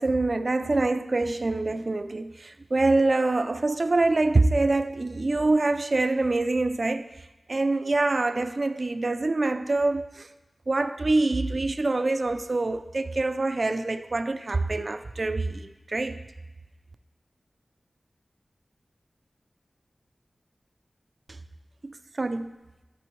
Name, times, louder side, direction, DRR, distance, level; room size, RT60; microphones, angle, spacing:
voice 1, 0.0-10.3 10.7-16.2 21.3-21.4 21.8-22.6, right 2 dB, 50° right, 10 dB, 0.4 m, -25 dB
13.0 x 5.1 x 3.1 m, 1.1 s
wide cardioid pair, 80°, 0 cm